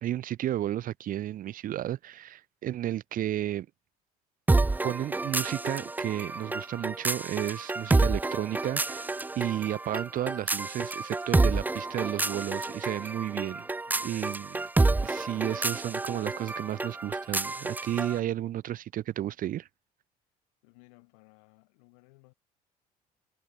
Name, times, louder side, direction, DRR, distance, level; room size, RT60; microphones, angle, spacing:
voice 1, 0.0-3.7 4.8-13.7 14.0-14.5 15.0-19.7, right 12 dB, 45° right, 0.9 m, -32 dB
sound 1, 4.5-18.2, right 3 dB, 10° right, 0.5 m, -29 dB
voice 2, 13.9-15.2 20.6-22.3, left 30 dB, 70° left, 3.7 m, -59 dB
figure-of-eight pair, 55°, 19 cm